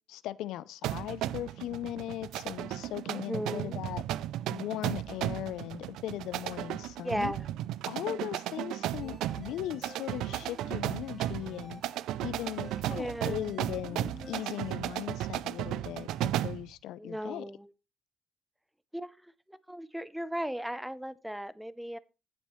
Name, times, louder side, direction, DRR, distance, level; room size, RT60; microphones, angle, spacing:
voice 1, 0.1-4.0 4.5-7.3 7.9-11.8 12.2-17.5, left 14 dB, 90° left, 0.5 m, -38 dB
sound 1, 0.8-16.7, right 13 dB, 90° right, 0.4 m, -35 dB
voice 2, 3.1-3.8 7.0-7.5 9.0-9.3 12.9-13.6 17.0-17.7 18.9-22.0, equal, 5° right, 0.7 m, -37 dB
sound 2, 9.0-12.0 12.4-14.8, left 2 dB, 20° left, 2.1 m, -50 dB
16.0 x 7.3 x 3.2 m
cardioid pair, 90°, 0 cm